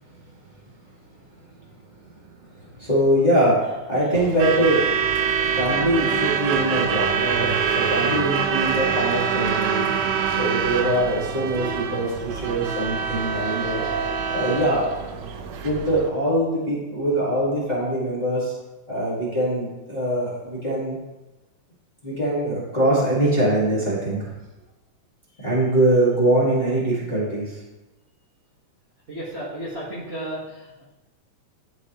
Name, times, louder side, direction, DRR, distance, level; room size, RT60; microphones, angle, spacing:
voice 1, 2.6-5.3 5.6-9.9 10.3-13.8 14.3-14.9 15.6-18.5 18.9-21.0 22.0-24.3 25.4-27.6, right 1 dB, 20° left, -8 dB, 1.2 m, -23 dB
Truck / Alarm, 4.1-16.1, right 7 dB, 85° right, 1.4 m, -25 dB
voice 2, 29.1-30.9, right 1 dB, 55° right, -9 dB, 0.7 m, -33 dB
11.0 x 4.5 x 3.0 m, 1.1 s
omnidirectional pair, 3.6 m